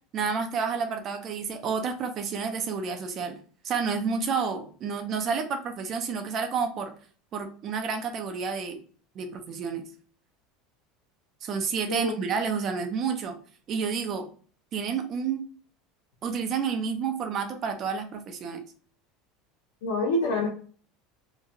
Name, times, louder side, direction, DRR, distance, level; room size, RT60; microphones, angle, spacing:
voice 1, 0.1-3.4 3.6-6.9 7.3-8.8 9.1-9.8 11.4-13.4 13.7-14.3 14.7-15.4 16.2-18.6, right 5 dB, 45° right, 5 dB, 0.6 m, -30 dB
voice 2, 19.8-20.5, left 1 dB, 85° left, -5 dB, 0.8 m, -26 dB
2.9 x 2.2 x 2.6 m, 0.43 s
supercardioid pair, 110°, 0 cm